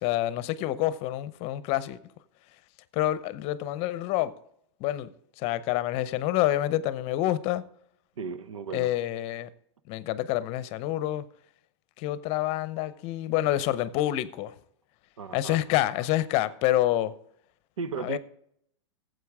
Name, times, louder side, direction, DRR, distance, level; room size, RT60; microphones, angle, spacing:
voice 1, 0.0-2.0 2.9-4.3 4.8-5.1 5.4-7.6 8.7-9.5 9.9-11.3 12.0-14.5 15.3-17.1 18.0-18.2, left 14 dB, 40° left, 0.7 m, -27 dB
voice 2, 8.2-8.9 15.2-15.6 17.8-18.2, right 5 dB, 90° right, 0.8 m, -35 dB
14.0 x 7.8 x 3.5 m
hypercardioid pair, 125°, 16 cm